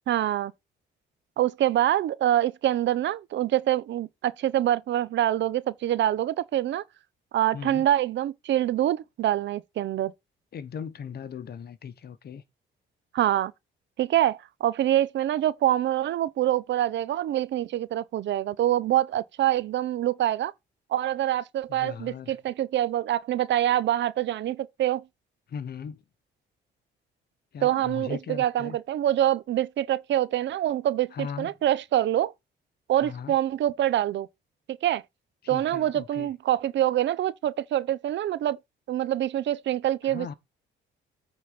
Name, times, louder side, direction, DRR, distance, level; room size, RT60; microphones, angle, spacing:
voice 1, 0.1-0.5 1.4-6.8 7.3-10.1 13.1-13.5 14.0-20.5 20.9-25.0 27.6-32.3 32.9-34.3 34.8-35.0 35.5-38.6 38.9-40.3, right 12 dB, 65° right, 0.6 m, -25 dB
voice 2, 7.5-7.8 10.5-12.4 21.7-22.4 25.5-26.0 27.5-28.8 31.1-31.5 33.0-33.3 35.4-36.3 40.1-40.3, left 7 dB, 55° left, 1.0 m, -38 dB
8.7 x 4.1 x 5.1 m
cardioid pair, 90°, 20 cm